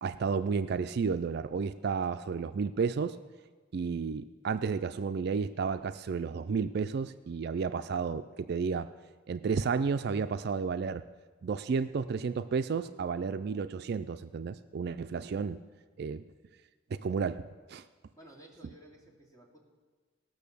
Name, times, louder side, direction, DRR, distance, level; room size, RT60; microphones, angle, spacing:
voice 1, 0.0-3.2 3.7-8.9 9.3-11.0 11.4-15.6 16.0-16.2 16.9-17.4 17.7-17.8, right 5 dB, 55° right, 11 dB, 0.3 m, -32 dB
voice 2, 18.1-19.6, right 1 dB, 20° left, -4 dB, 2.8 m, -54 dB
18.0 x 6.4 x 6.9 m, 1.4 s
head